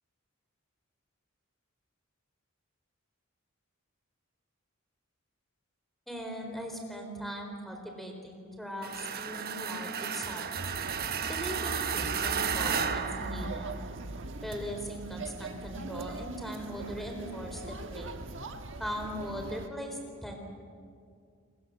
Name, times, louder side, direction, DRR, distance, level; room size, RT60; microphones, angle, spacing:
voice 1, 6.1-10.5 11.3-13.7 14.4-18.2 18.8-20.4, equal, ahead, 3 dB, 4.2 m, -39 dB
sound 1, 8.8-14.0, right 7 dB, 45° right, 1.1 m, -33 dB
sound 2, 10.5-19.7, right 2 dB, 60° right, 1.4 m, -41 dB
28.5 x 21.5 x 7.6 m, 2.3 s
head